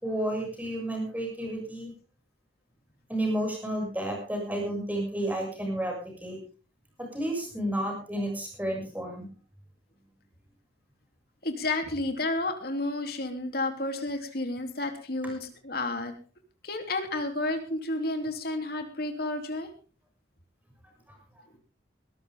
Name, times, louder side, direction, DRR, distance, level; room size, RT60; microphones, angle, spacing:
voice 1, 0.0-1.9 3.1-6.4 7.0-9.3 21.1-21.2, right 1 dB, 10° right, 1 dB, 6.5 m, -31 dB
voice 2, 11.4-16.1 16.6-19.7, left 2 dB, 55° left, 5 dB, 3.0 m, -31 dB
21.0 x 13.0 x 3.6 m, 0.36 s
head